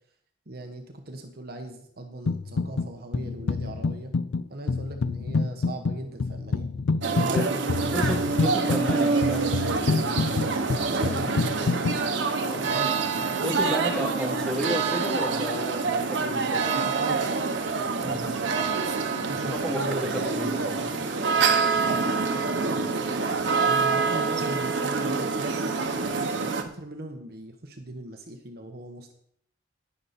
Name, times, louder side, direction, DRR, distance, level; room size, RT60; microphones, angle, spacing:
voice 1, 0.5-4.1 4.5-6.8 7.2-7.9 10.7-11.8 12.4-13.3 17.0-17.3 17.8-18.3 19.3-20.2 21.8-22.9 23.6-25.7 26.0-26.1 26.4-29.1, right 2 dB, 55° right, 4 dB, 1.3 m, -39 dB
sound 1, 2.3-2.9 3.1-12.0, left 4 dB, 85° left, 0.4 m, -27 dB
sound 2, 7.0-26.6, right 4 dB, 90° right, 1.1 m, -26 dB
voice 2, 7.1-7.5 7.9-9.5 12.4-12.6 13.4-16.6 18.0-18.3 19.5-20.9, equal, 5° left, -2 dB, 2.9 m, -32 dB
19.0 x 6.7 x 4.3 m, 0.68 s
head